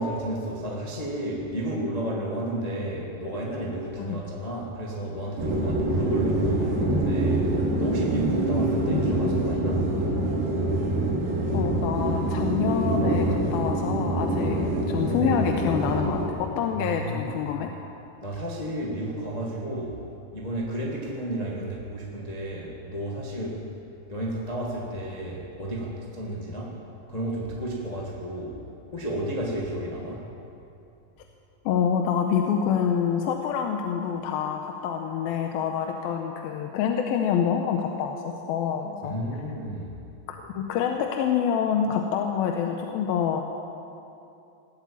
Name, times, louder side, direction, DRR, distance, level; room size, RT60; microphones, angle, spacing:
voice 1, 0.0-10.0 16.7-17.6 18.2-23.8 24.1-26.8 27.1-28.6 28.9-30.4 39.0-40.0, right 1 dB, 40° left, -3 dB, 0.5 m, -32 dB
sound 1, 5.4-16.3, right 1 dB, 85° right, 4.1 m, -25 dB
voice 2, 11.5-14.6 14.9-17.7 31.7-39.2 40.3-43.4, left 7 dB, 90° left, 3 dB, 2.6 m, -27 dB
19.0 x 8.3 x 8.6 m, 2.7 s
omnidirectional pair, 4.3 m